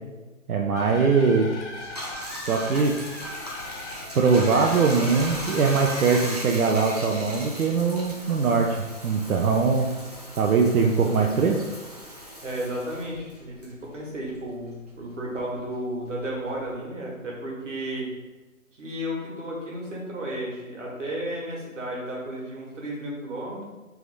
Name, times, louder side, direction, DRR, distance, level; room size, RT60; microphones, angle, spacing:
voice 1, 0.5-1.5 2.3-3.0 4.1-8.8 9.0-9.9 10.4-11.6, right 5 dB, 85° right, 0 dB, 0.6 m, -21 dB
sound 1, 0.7-6.4, left 2 dB, 55° left, 0.6 m, -39 dB
Bathtub (filling or washing), 1.7-14.6 14.9-16.7, equal, 30° right, 0.4 m, -38 dB
voice 2, 12.4-18.1 18.8-23.6, right 1 dB, 60° right, -2 dB, 1.3 m, -33 dB
3.4 x 2.6 x 3.3 m, 1.2 s
figure-of-eight pair, 150°, 42 cm